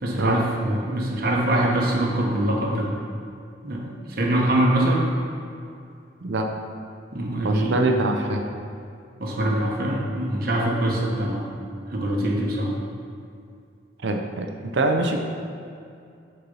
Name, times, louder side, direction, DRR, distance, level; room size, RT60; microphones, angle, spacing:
voice 1, 0.0-2.9 3.6-5.0 7.1-7.7 9.2-11.6 11.9-12.7, right 1 dB, 55° right, -2 dB, 1.1 m, -23 dB
voice 2, 7.4-8.4 14.0-15.2, right 2 dB, 80° right, 3 dB, 0.6 m, -24 dB
6.8 x 4.4 x 5.4 m, 2.4 s
head